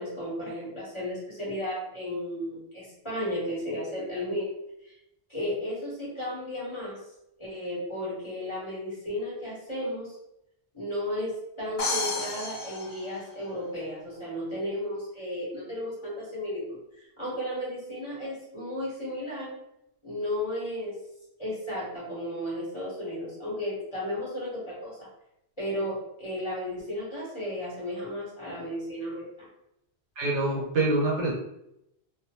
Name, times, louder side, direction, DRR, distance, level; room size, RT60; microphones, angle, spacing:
voice 1, 0.0-4.5 4.8-4.9 5.3-7.0 7.4-10.2 10.7-19.5 20.0-21.0 21.4-25.1 25.6-29.5, left 1 dB, 25° left, -8 dB, 1.2 m, -34 dB
sound 1, 11.8-13.8, left 2 dB, 50° left, 0.7 m, -32 dB
voice 2, 30.2-31.3, right 2 dB, 80° right, -5 dB, 1.2 m, -25 dB
2.6 x 2.1 x 2.8 m, 0.83 s
omnidirectional pair, 1.2 m